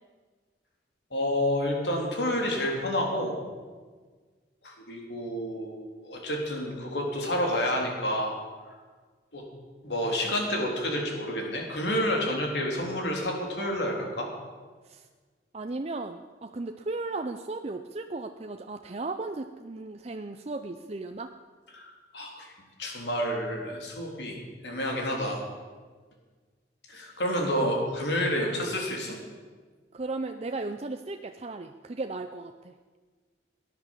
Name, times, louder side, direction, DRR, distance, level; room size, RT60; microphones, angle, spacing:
voice 1, 1.1-3.4 4.6-8.3 9.3-9.4 9.8-14.3 21.7-22.5 22.8-25.4 26.9-29.2, equal, 75° left, 0 dB, 3.7 m, -29 dB
voice 2, 15.5-21.3 29.9-32.7, right 3 dB, 35° right, 6 dB, 0.6 m, -35 dB
18.0 x 10.5 x 7.4 m, 1.5 s
head